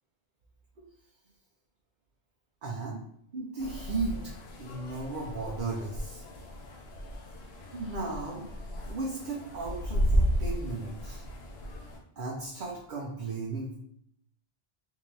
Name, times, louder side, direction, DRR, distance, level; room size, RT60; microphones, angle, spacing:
voice 1, 2.6-3.0 3.3-4.2 4.6-6.2 7.7-8.5 8.9-11.2 12.2-13.8, right 3 dB, 55° right, -3 dB, 0.7 m, -35 dB
sound 1, 3.6-12.0, equal, 75° left, 0.9 m, -33 dB
3.7 x 2.7 x 3.1 m, 0.70 s
omnidirectional pair, 1.1 m